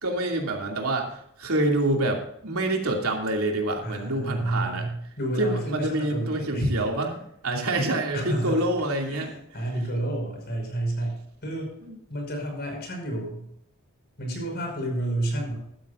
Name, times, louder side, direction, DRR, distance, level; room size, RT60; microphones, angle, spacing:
voice 1, 0.0-4.9 5.4-7.1 7.4-9.3 11.8-11.9, right 2 dB, 75° right, 1 dB, 2.7 m, -27 dB
voice 2, 3.8-6.8 8.1-8.7 9.1-11.1 11.4-11.7 12.1-13.4 14.2-15.5, right 1 dB, 50° left, 2 dB, 5.5 m, -30 dB
15.0 x 12.5 x 2.6 m, 0.71 s
head